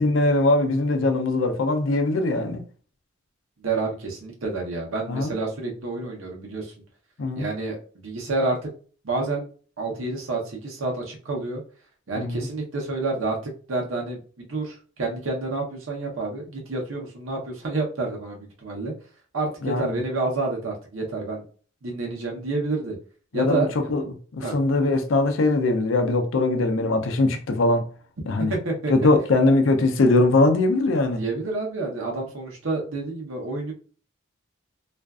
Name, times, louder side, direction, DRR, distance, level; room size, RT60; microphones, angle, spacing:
voice 1, 0.0-2.6 5.1-5.3 7.2-7.5 12.2-12.5 19.6-20.0 23.3-24.0 24.3-27.9 28.3-28.5 28.9-31.2, left 2 dB, 70° left, 0.5 m, -21 dB
voice 2, 3.6-6.7 7.3-8.7 9.0-9.5 9.8-11.6 12.1-18.9 19.3-21.4 21.8-23.0 23.3-23.7 24.4-24.5 28.5-28.9 31.1-33.7, right 3 dB, 90° right, 0.8 m, -29 dB
2.5 x 2.3 x 2.3 m
head